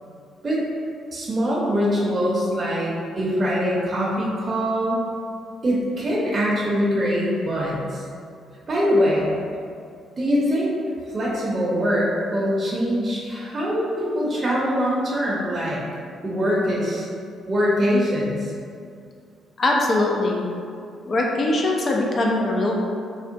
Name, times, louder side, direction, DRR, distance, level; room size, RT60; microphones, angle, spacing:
voice 1, 1.1-5.0 5.6-8.0 8.7-9.3 10.2-10.7 11.1-15.8 16.2-17.1 17.5-18.5, equal, 30° right, -6 dB, 0.6 m, -23 dB
voice 2, 19.6-20.5 21.1-22.8, left 2 dB, 45° left, 0 dB, 0.4 m, -21 dB
3.6 x 2.1 x 2.5 m, 2.3 s
cardioid pair, 90°, 0 cm